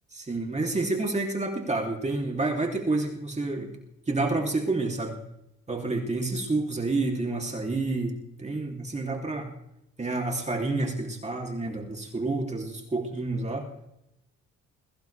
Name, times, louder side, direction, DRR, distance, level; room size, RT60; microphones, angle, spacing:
voice 1, 0.1-3.7 4.1-5.2 5.7-9.5 10.0-13.7, right 2 dB, 20° right, 1 dB, 3.1 m, -29 dB
22.0 x 16.0 x 3.4 m, 0.82 s
cardioid pair, 90°, 30 cm